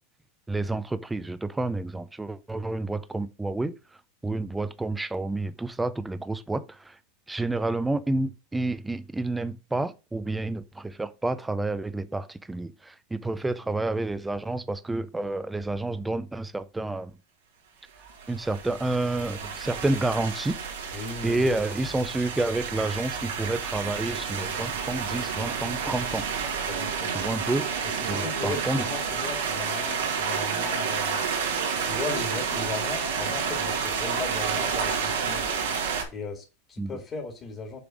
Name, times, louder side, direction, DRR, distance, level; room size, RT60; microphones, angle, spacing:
voice 1, 0.5-3.7 4.2-6.9 7.3-17.1 18.3-20.6 20.9-26.2 27.1-27.7 28.1-28.8 36.8-37.0, right 2 dB, 10° right, 0.5 m, -29 dB
sound 1, 18.0-36.0, right 6 dB, 85° right, 2.4 m, -30 dB
voice 2, 20.9-21.5 26.7-27.1 27.8-31.2 31.8-35.5 36.1-37.8, left 3 dB, 30° left, 2.1 m, -37 dB
6.8 x 3.5 x 6.2 m
supercardioid pair, 120°, 0 cm